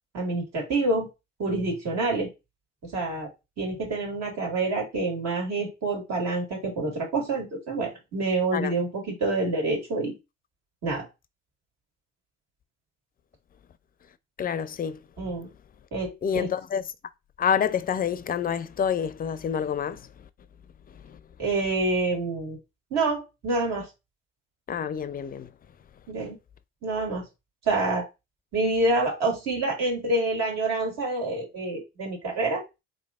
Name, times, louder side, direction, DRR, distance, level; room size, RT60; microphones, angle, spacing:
voice 1, 0.1-1.1 1.4-2.3 2.8-3.3 3.6-10.1 10.8-11.1 15.2-15.5 15.9-16.5 21.4-22.6 22.9-23.9 26.1-26.4 26.8-27.2 27.6-28.0 28.5-32.6, right 2 dB, 60° right, 2.0 m, -27 dB
voice 2, 14.4-15.0 16.2-16.8 17.4-20.0 21.0-21.2 24.7-25.5, left 7 dB, 30° left, 0.5 m, -27 dB
4.0 x 3.2 x 2.4 m
hypercardioid pair, 55°, 30 cm